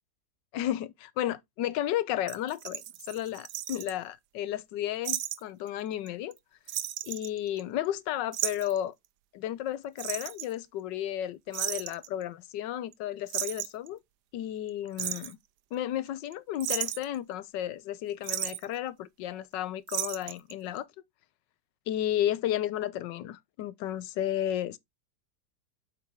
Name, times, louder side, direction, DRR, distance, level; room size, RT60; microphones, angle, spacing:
voice 1, 0.5-2.8 3.1-6.4 7.0-8.9 9.3-14.0 14.3-15.4 15.7-20.9 21.9-24.8, left 12 dB, 85° left, 1.4 m, -33 dB
sound 1, 2.3-3.9 5.0-5.4 5.7-5.8 6.1-6.4 6.7-7.9 8.3-8.8 10.0-10.5 11.5-12.1 12.9-13.0 13.3-13.9 14.7-15.3 16.1-16.3 16.6-17.2 18.2-18.6 19.9-20.5 20.8-20.9, right 12 dB, 75° right, 1.3 m, -34 dB
7.7 x 5.5 x 3.5 m
omnidirectional pair, 1.9 m